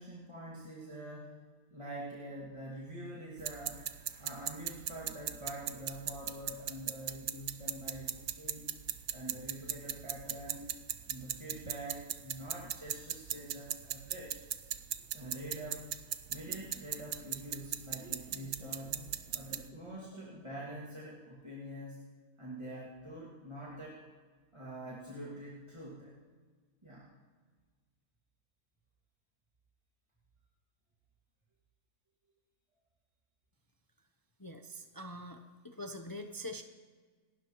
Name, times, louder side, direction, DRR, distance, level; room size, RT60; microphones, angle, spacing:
voice 1, 0.0-1.4 1.7-8.7 9.1-10.7 11.1-14.6 15.1-15.9 16.3-19.1 19.3-22.0 22.4-24.0 24.5-26.2 26.8-27.1, right 1 dB, 20° right, -6 dB, 2.1 m, -45 dB
sound 1, 3.4-19.7, right 11 dB, 65° right, 1.0 m, -39 dB
sound 2, 14.9-21.0, right 1 dB, 45° right, 2.8 m, -58 dB
voice 2, 34.4-36.6, left 1 dB, 35° left, 5 dB, 0.3 m, -44 dB
28.0 x 12.5 x 3.0 m, 1.5 s
omnidirectional pair, 1.7 m